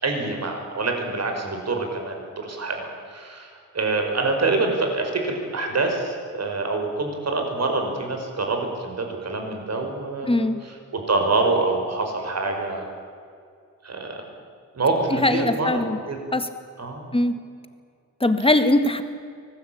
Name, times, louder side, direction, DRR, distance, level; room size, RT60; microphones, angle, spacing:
voice 1, 0.0-3.5 3.7-10.5 10.9-12.9 13.8-14.2 14.7-16.2 16.8-17.1, right 3 dB, 50° right, 3 dB, 5.3 m, -26 dB
voice 2, 10.2-10.6 15.1-16.0 16.3-16.5 17.1-17.3 18.2-19.0, left 1 dB, 15° left, 9 dB, 2.0 m, -21 dB
25.0 x 20.0 x 8.8 m, 2.3 s
wide cardioid pair, 110°, 32 cm